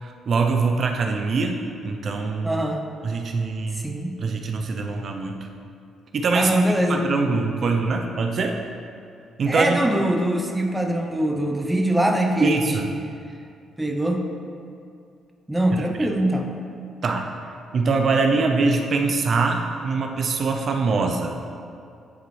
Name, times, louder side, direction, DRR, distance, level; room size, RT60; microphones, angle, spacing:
voice 1, 0.0-1.6 1.8-2.6 3.0-3.9 4.2-5.4 6.1-8.6 9.4-9.8 12.4-12.9 15.7-16.1 17.0-17.2 17.7-21.3, right 4 dB, 55° right, 3 dB, 0.5 m, -23 dB
voice 2, 2.4-2.8 3.8-4.2 6.3-7.1 9.5-12.8 13.8-14.3 15.5-16.5 18.5-18.6, right 1 dB, 10° right, 2 dB, 0.6 m, -23 dB
9.1 x 4.0 x 3.1 m, 2.4 s
cardioid pair, 90°, 0 cm